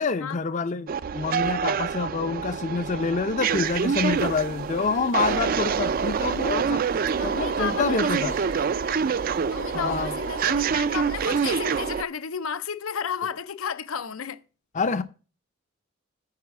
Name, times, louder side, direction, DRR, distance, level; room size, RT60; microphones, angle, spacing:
voice 1, 0.0-6.8 7.2-8.3 9.7-10.1 14.7-15.0, left 4 dB, 35° left, 0.5 m, -27 dB
sound 1, 0.9-12.0, right 6 dB, 45° right, 0.3 m, -26 dB
sound 2, 3.5-11.8, right 7 dB, 70° right, 1.1 m, -49 dB
voice 2, 7.0-14.4, left 6 dB, 85° left, 0.6 m, -33 dB
9.6 x 4.0 x 7.0 m
head